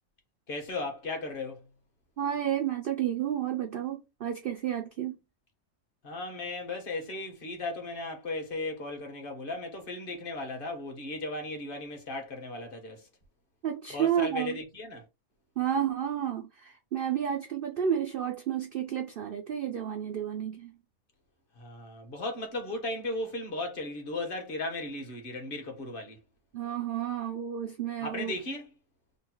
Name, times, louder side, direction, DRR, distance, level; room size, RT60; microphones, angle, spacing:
voice 1, 0.5-1.7 6.0-13.1 13.9-15.0 21.6-26.2 28.0-28.7, left 2 dB, 45° left, 1.0 m, -36 dB
voice 2, 2.2-5.2 13.6-14.6 15.6-20.7 26.5-28.3, right 9 dB, 80° right, 0.5 m, -31 dB
3.1 x 2.1 x 4.2 m
omnidirectional pair, 1.5 m